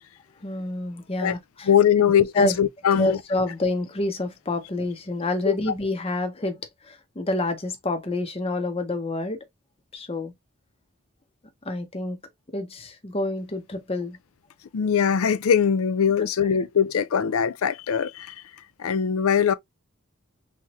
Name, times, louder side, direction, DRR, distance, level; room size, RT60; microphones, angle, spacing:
voice 1, 0.4-1.7 2.3-2.6 3.0-9.4 9.9-10.3 11.6-12.2 12.5-14.2 16.2-16.3, left 2 dB, 25° left, 0.8 m, -28 dB
voice 2, 1.7-3.2 5.5-5.6 14.7-18.4 18.8-19.5, left 7 dB, 80° left, 0.5 m, -21 dB
3.5 x 2.9 x 3.0 m
head